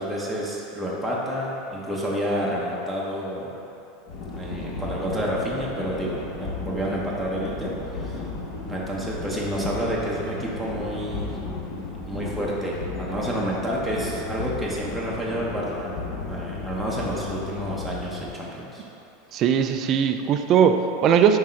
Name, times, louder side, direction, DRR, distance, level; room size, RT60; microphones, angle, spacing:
voice 1, 0.0-3.5 4.4-7.7 8.0-8.2 8.7-11.4 12.1-15.9 16.3-18.8, equal, ahead, -6 dB, 0.7 m, -29 dB
sound 1, 4.1-18.2, left 3 dB, 40° left, 0.9 m, -34 dB
voice 2, 19.3-21.4, right 8 dB, 30° right, 7 dB, 0.3 m, -19 dB
6.1 x 4.7 x 4.3 m, 2.9 s
supercardioid pair, 170°, 0 cm